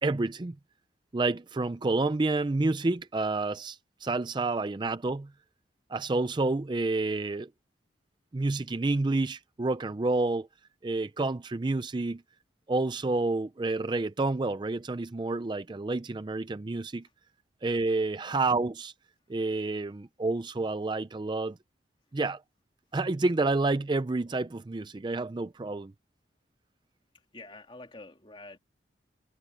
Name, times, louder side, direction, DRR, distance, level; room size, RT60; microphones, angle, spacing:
voice 1, 0.0-0.6 1.1-5.3 5.9-7.5 8.3-10.5 10.8-12.2 12.7-17.1 17.6-18.9 19.3-21.6 22.1-22.4 22.9-25.9, right 3 dB, 25° right, 0.4 m, -29 dB
voice 2, 17.8-18.1 27.3-28.6, left 2 dB, 30° left, 3.1 m, -48 dB
head